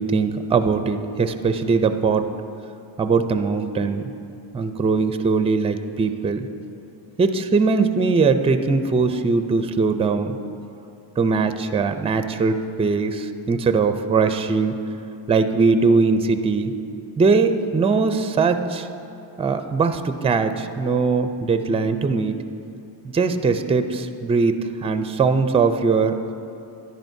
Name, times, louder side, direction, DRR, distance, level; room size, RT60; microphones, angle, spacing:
voice 1, 0.0-2.3 3.0-4.1 4.5-6.5 7.2-10.4 11.2-14.8 15.3-16.7 17.2-18.9 19.4-22.4 23.0-26.3, right 4 dB, 15° right, 9 dB, 0.4 m, -21 dB
13.5 x 10.5 x 2.7 m, 2.6 s
cardioid pair, 85°, 47 cm